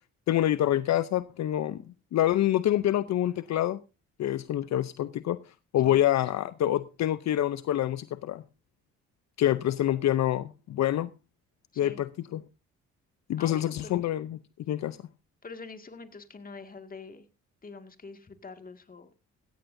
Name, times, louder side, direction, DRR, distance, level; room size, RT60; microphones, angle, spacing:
voice 1, 0.3-1.8 2.1-3.8 4.2-5.4 5.7-8.4 9.4-11.1 11.8-12.4 13.3-14.4 14.7-15.0, left 12 dB, 65° left, 14 dB, 0.6 m, -26 dB
voice 2, 11.7-12.1 13.4-14.1 15.4-17.3 17.6-19.1, left 4 dB, 30° left, 8 dB, 2.0 m, -45 dB
16.0 x 14.5 x 2.6 m, 0.29 s
cardioid pair, 90°, 30 cm